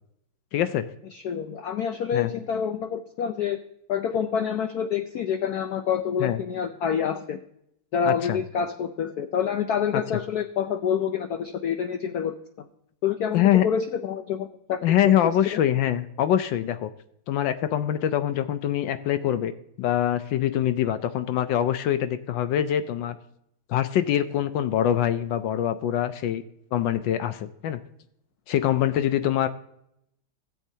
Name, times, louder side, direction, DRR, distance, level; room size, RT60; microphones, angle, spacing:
voice 1, 0.5-0.9 2.1-2.3 6.2-6.4 8.1-8.4 9.9-10.0 13.3-13.7 14.8-16.9 17.3-19.5 19.8-23.2 23.7-26.4 26.7-27.8 28.5-29.5, left 11 dB, 75° left, 11 dB, 1.2 m, -24 dB
voice 2, 1.1-3.6 3.9-7.4 7.9-12.7 13.0-14.8, left 7 dB, 90° left, 8 dB, 0.8 m, -27 dB
16.5 x 7.3 x 2.8 m, 0.76 s
omnidirectional pair, 2.4 m